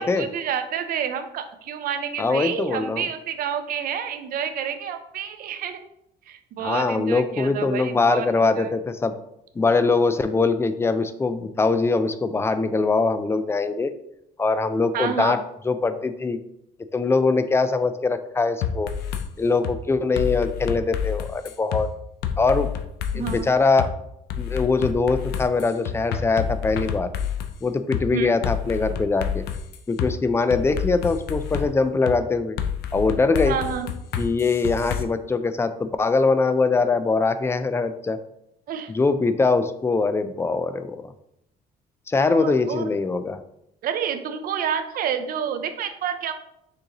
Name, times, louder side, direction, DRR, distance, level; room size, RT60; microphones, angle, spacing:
voice 1, 0.0-5.8 6.3-8.7 14.9-15.4 23.1-23.5 28.1-28.3 33.4-33.9 38.7-38.9 42.2-42.9 43.8-46.3, right 8 dB, 60° right, 9 dB, 0.5 m, -29 dB
voice 2, 2.2-3.1 6.6-9.1 9.6-13.9 14.4-15.4 15.7-16.4 16.9-18.9 19.4-21.9 22.4-22.7 23.1-23.9 24.4-27.1 27.6-29.4 29.9-32.6 32.9-33.6 34.2-38.2 38.9-41.1 42.1-43.4, left 4 dB, 15° left, 11 dB, 0.3 m, -22 dB
sound 1, 18.6-19.3 19.6-19.8 20.2-21.8 22.2-23.4 23.8-23.9 24.3-27.5 27.9-28.1 28.4-30.1 30.5-31.7 32.1-32.2 32.6-35.0, left 8 dB, 75° left, 0.5 m, -28 dB
6.4 x 2.6 x 2.9 m, 0.79 s
cardioid pair, 110°, 17 cm